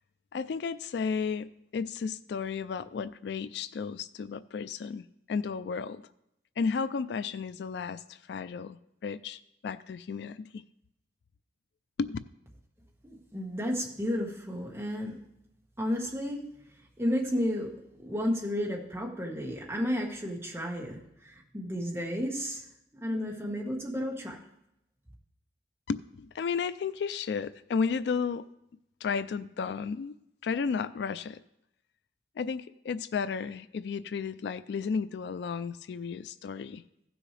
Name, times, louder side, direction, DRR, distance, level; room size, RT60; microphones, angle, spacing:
voice 1, 0.3-6.0 6.6-10.6 12.0-12.2 25.9-28.5 29.0-30.1 30.4-31.4 32.4-36.8, left 5 dB, 70° left, 15 dB, 0.3 m, -33 dB
voice 2, 13.0-15.2 15.8-16.4 17.0-17.7 18.0-22.6 22.9-24.4, equal, 15° right, -2 dB, 1.5 m, -32 dB
15.5 x 6.2 x 3.3 m, 0.81 s
head